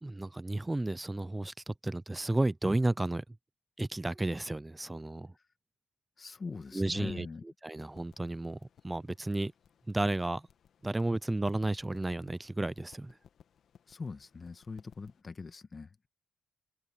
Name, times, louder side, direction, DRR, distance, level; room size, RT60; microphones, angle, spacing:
voice 1, 0.0-3.2 3.8-5.3 6.7-9.5 9.9-10.5 10.8-13.2, right 2 dB, 15° right, 0.4 m, -33 dB
voice 2, 6.2-7.4 13.9-16.1, left 4 dB, 30° left, 1.6 m, -42 dB
sound 1, 7.7-15.2, left 8 dB, 60° left, 1.4 m, -61 dB
cardioid pair, 90°, 0 cm